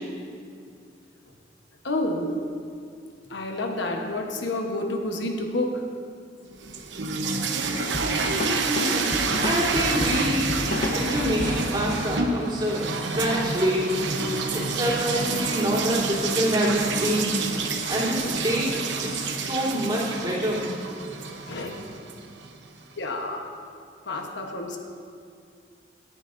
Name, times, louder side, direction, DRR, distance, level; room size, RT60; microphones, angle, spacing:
voice 1, 1.8-2.4 3.3-5.9 8.8-8.9 17.9-18.2 21.5-21.8 23.0-23.5 24.1-24.8, left 1 dB, 80° left, 2 dB, 1.1 m, -29 dB
sound 1, 6.5-22.6, right 4 dB, 85° right, 1.0 m, -28 dB
sound 2, 7.9-11.7, left 1 dB, 45° left, 1.1 m, -31 dB
voice 2, 8.4-10.5 10.9-14.0 14.5-17.5 17.9-20.6, equal, 25° right, -9 dB, 3.3 m, -26 dB
18.0 x 11.0 x 2.6 m, 2.3 s
head